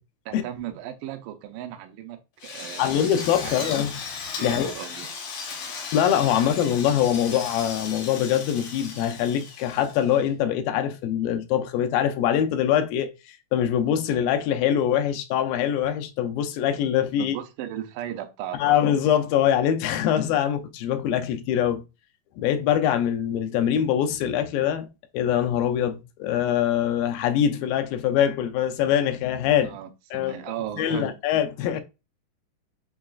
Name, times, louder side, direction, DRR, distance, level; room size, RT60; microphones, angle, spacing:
voice 1, 0.3-2.9 3.4-3.7 4.4-5.1 5.4-5.5 6.3-6.5 17.2-18.9 29.6-31.2, right 11 dB, 80° right, 2.0 m, -36 dB
Drill, 2.4-10.3, left 5 dB, 70° left, 1.4 m, -36 dB
voice 2, 2.8-4.0 4.4-4.7 5.9-17.4 18.6-21.8 22.4-24.9 25.1-29.8 30.1-30.3 30.8-31.8, left 10 dB, 90° left, 2.3 m, -23 dB
6.0 x 2.4 x 2.3 m
omnidirectional pair, 4.0 m